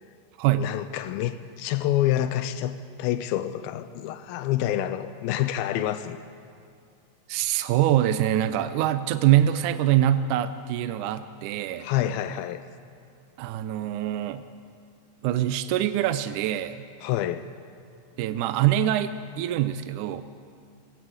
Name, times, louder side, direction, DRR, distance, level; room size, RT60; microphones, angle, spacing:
voice 1, 0.6-6.2 11.8-12.6 17.0-17.4, left 12 dB, 85° left, 12 dB, 2.5 m, -27 dB
voice 2, 7.3-11.9 13.4-14.4 15.2-16.9 18.2-20.2, right 12 dB, 80° right, 11 dB, 1.8 m, -24 dB
22.5 x 18.0 x 8.1 m, 2.4 s
omnidirectional pair, 4.2 m